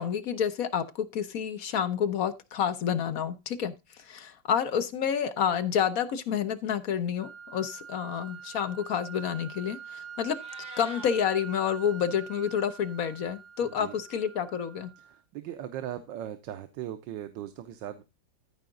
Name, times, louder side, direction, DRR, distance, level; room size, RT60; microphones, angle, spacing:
voice 1, 0.0-10.4 10.8-14.9, left 8 dB, 60° left, 10 dB, 1.1 m, -29 dB
sound 1, 7.2-15.2, right 7 dB, 60° right, 1.6 m, -45 dB
Meow, 10.1-11.1, equal, 5° right, 3.2 m, -46 dB
voice 2, 13.6-14.0 15.0-18.0, right 11 dB, 80° right, 9 dB, 1.4 m, -39 dB
14.0 x 4.9 x 3.8 m, 0.25 s
omnidirectional pair, 2.0 m